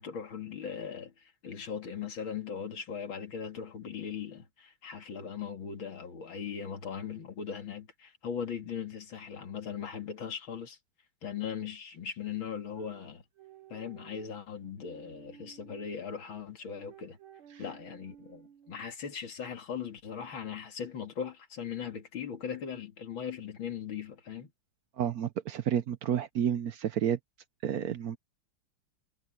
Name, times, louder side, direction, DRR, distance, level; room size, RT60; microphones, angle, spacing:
voice 1, 0.0-10.8 11.2-13.2 13.7-17.2 17.6-24.5, left 7 dB, 70° left, 3.0 m, -39 dB
sound 1, 12.7-15.9 16.6-18.9, right 9 dB, 85° right, 2.2 m, -55 dB
voice 2, 25.0-27.2 27.6-28.2, right 9 dB, 70° right, 0.9 m, -30 dB
omnidirectional pair, 2.3 m